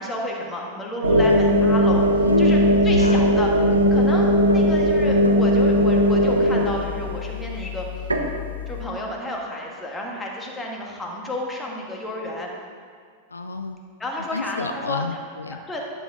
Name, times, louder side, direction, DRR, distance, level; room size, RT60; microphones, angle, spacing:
voice 1, 0.0-2.6 2.8-8.1 8.7-12.5 14.0-15.0 15.7-15.8, left 1 dB, 15° left, -1 dB, 1.7 m, -31 dB
sound 1, 1.0-8.8, equal, 85° right, 0.8 m, -19 dB
voice 2, 2.2-3.2 3.7-4.0 13.3-13.8 14.3-15.6, left 4 dB, 80° left, 8 dB, 0.4 m, -29 dB
11.0 x 7.1 x 3.8 m, 2.2 s
figure-of-eight pair, 90°, 0 cm